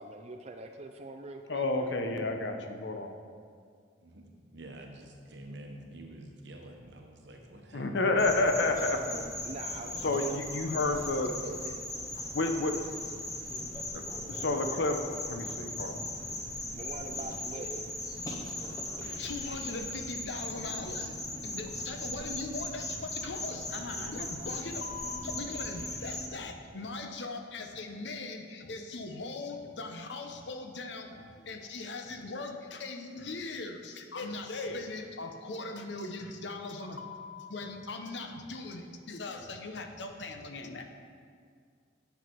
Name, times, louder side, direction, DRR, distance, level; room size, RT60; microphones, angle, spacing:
voice 1, 0.0-1.9 9.4-10.3 11.4-11.8 16.7-17.8, right 2 dB, 35° right, 5 dB, 0.4 m, -43 dB
voice 2, 1.5-3.2 7.7-9.0 10.0-11.3 12.3-12.8 13.9-14.0 14.3-16.0 19.0-40.8, left 2 dB, 65° left, 5 dB, 0.7 m, -35 dB
voice 3, 4.0-8.5, right 1 dB, 65° right, 2 dB, 1.1 m, -48 dB
sound 1, 8.2-26.3, left 1 dB, 20° left, 0.8 m, -38 dB
8.7 x 6.2 x 4.6 m, 2.1 s
head